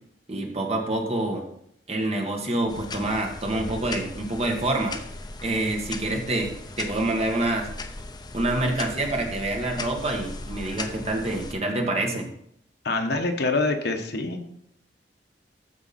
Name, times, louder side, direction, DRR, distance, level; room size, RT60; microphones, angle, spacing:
voice 1, 0.3-1.4 1.9-5.0 5.4-7.7 8.3-12.3, right 2 dB, 35° right, 2 dB, 1.6 m, -27 dB
sound 1, 2.7-11.5, left 2 dB, 25° left, 0.8 m, -38 dB
voice 2, 12.8-14.5, left 3 dB, 65° left, 5 dB, 1.2 m, -25 dB
14.0 x 5.2 x 4.2 m, 0.71 s
head